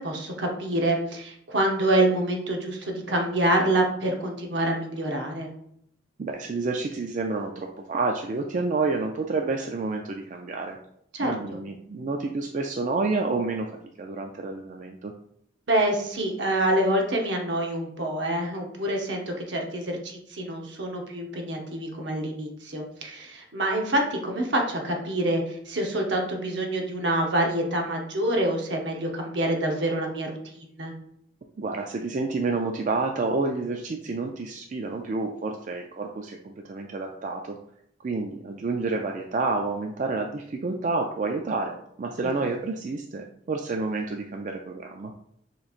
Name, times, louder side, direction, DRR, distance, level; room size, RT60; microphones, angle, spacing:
voice 1, 0.0-5.5 11.1-11.6 15.7-30.4 30.8-30.9 42.2-42.3, right 1 dB, 70° right, 1 dB, 0.9 m, -26 dB
voice 2, 6.2-10.8 11.2-15.1 31.6-37.6 38.0-45.1, right 3 dB, 40° right, 2 dB, 0.3 m, -29 dB
6.8 x 3.1 x 2.4 m, 0.71 s
head